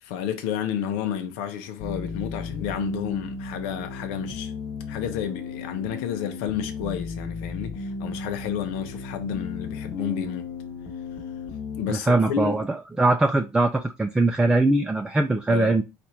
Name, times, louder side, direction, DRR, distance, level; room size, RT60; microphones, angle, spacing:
voice 1, 0.0-4.5 4.9-10.5 11.8-12.6 15.5-15.8, left 9 dB, 85° left, 0.7 m, -31 dB
sound 1, 1.8-11.8, left 4 dB, 60° left, 1.0 m, -35 dB
voice 2, 11.9-15.8, right 2 dB, 10° right, 0.4 m, -21 dB
4.1 x 2.5 x 4.4 m
cardioid pair, 115°, 7 cm